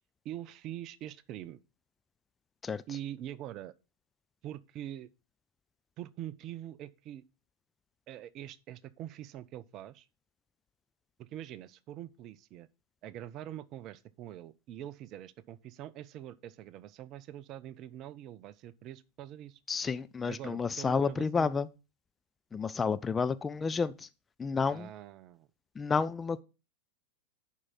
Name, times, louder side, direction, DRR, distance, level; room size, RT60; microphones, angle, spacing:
voice 1, 0.2-1.6 2.9-3.7 4.4-5.1 6.0-7.2 8.1-10.1 11.2-12.7 13.0-19.6 20.2-21.5 24.6-25.5, right 12 dB, 35° right, 0.5 m, -44 dB
voice 2, 19.7-21.7 22.5-24.1 24.4-24.9 25.8-26.4, left 5 dB, 15° left, 0.4 m, -30 dB
11.0 x 4.6 x 4.1 m
figure-of-eight pair, 90°, 0 cm